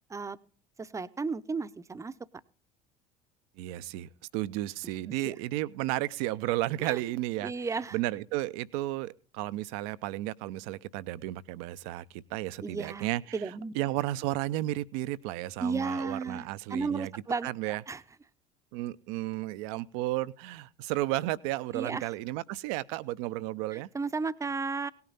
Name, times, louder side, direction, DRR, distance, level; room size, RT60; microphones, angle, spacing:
voice 1, 0.8-2.1 5.2-5.4 6.8-7.0 7.4-8.0 12.6-13.1 13.3-13.7 15.6-18.0 21.7-22.1 23.7-24.9, right 4 dB, 15° right, 0.8 m, -34 dB
voice 2, 3.6-13.2 13.7-17.1 17.4-17.8 18.7-23.9, right 16 dB, 55° right, 0.6 m, -33 dB
18.0 x 9.5 x 4.1 m
figure-of-eight pair, 65°, 21 cm